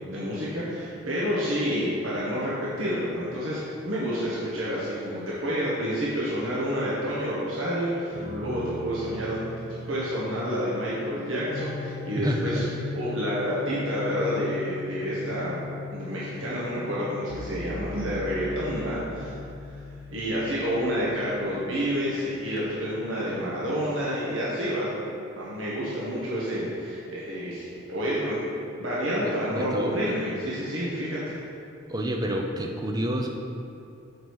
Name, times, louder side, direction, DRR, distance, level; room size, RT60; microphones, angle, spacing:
voice 1, 0.1-12.6 12.9-15.6 15.9-19.4 20.1-24.9 25.3-28.4 28.8-31.4, equal, 80° right, -8 dB, 1.3 m, -29 dB
sound 1, 8.1-20.6, right 1 dB, 45° right, 1.4 m, -43 dB
sound 2, 10.0-25.1, left 4 dB, 70° left, 0.7 m, -40 dB
voice 2, 29.2-30.0 31.9-33.3, equal, 20° right, 2 dB, 0.5 m, -29 dB
6.1 x 5.1 x 4.7 m, 2.5 s
head